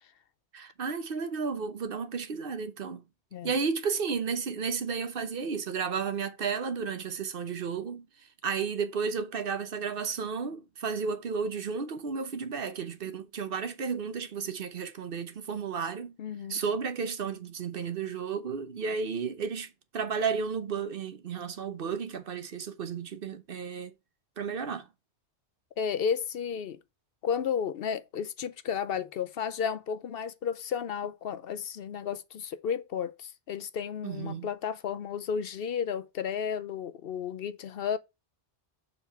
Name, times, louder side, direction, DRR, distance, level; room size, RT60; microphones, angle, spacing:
voice 1, 0.5-3.0 3.4-16.2 16.5-23.9 24.4-24.9 34.0-34.5, right 5 dB, 60° right, 1.0 m, -33 dB
voice 2, 16.2-16.6 25.8-26.8 27.2-38.0, left 7 dB, 65° left, 0.8 m, -33 dB
6.8 x 4.9 x 4.5 m
omnidirectional pair, 1.1 m